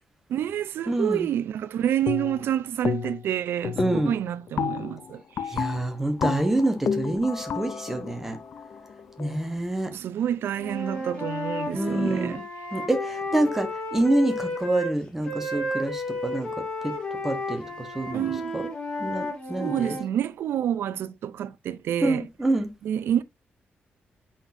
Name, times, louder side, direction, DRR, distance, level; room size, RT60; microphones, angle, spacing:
voice 1, 0.3-5.6 9.9-12.4 18.1-18.5 19.6-22.3 22.8-23.2, right 10 dB, 90° right, 0.5 m, -28 dB
voice 2, 0.9-1.3 3.8-4.1 5.5-8.4 9.2-9.9 11.7-12.4 12.7-16.9 17.2-18.7 19.0-20.0 22.0-22.7, right 1 dB, 10° right, 1.1 m, -27 dB
sound 1, 2.1-2.5 2.8-3.3 3.6-9.5, left 7 dB, 55° left, 0.5 m, -31 dB
Wind instrument woodwind instrument, 10.5-14.9 15.2-20.1, left 1 dB, 25° left, 1.9 m, -32 dB
8.0 x 5.9 x 2.7 m
wide cardioid pair, 175°, 4 cm